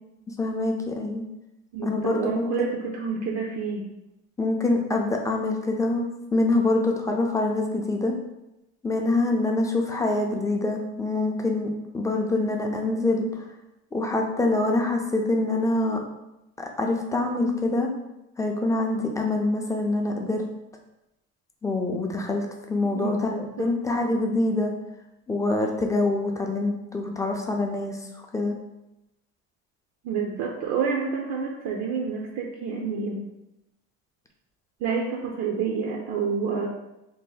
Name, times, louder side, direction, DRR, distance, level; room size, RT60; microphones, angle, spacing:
voice 1, 0.3-1.2 1.8-2.7 4.4-8.1 8.8-13.4 13.9-16.0 16.6-17.9 18.4-20.4 21.6-24.7 25.3-28.6, left 2 dB, 10° left, 2 dB, 0.4 m, -25 dB
voice 2, 1.7-3.9 22.9-23.7 30.0-33.2 34.8-36.7, right 5 dB, 55° right, 0 dB, 0.5 m, -28 dB
2.8 x 2.1 x 3.8 m, 0.92 s
supercardioid pair, 110°, 30 cm